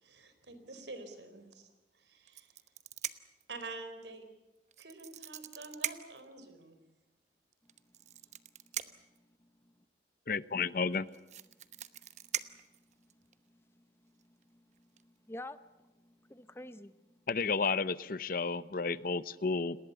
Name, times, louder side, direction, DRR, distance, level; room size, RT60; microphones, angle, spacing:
voice 1, 0.0-1.7 2.0-2.5 3.5-4.2 4.8-6.8, right 3 dB, 80° right, 9 dB, 4.1 m, -47 dB
sound 1, 2.3-3.4 4.7-6.2 7.7-9.2 10.6-10.7 10.9-13.3 14.2-14.4 14.8-15.0, right 10 dB, 40° right, 1.0 m, -41 dB
voice 2, 9.2-9.7 11.7-12.6 13.0-17.2, left 1 dB, 15° left, 13 dB, 0.8 m, -52 dB
voice 3, 10.3-11.1 17.3-19.9, left 4 dB, 50° left, 17 dB, 0.7 m, -32 dB
29.5 x 20.0 x 6.9 m, 1.1 s
head